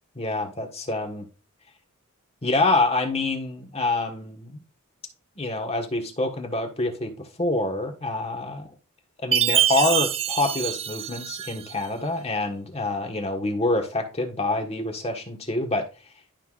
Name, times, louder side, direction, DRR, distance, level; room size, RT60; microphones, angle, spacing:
voice 1, 0.1-1.3 2.4-4.6 5.4-8.7 9.2-15.8, left 2 dB, 30° left, 3 dB, 1.5 m, -26 dB
Chime, 9.3-11.8, right 10 dB, 25° right, 0.4 m, -25 dB
12.0 x 5.7 x 2.5 m, 0.32 s
head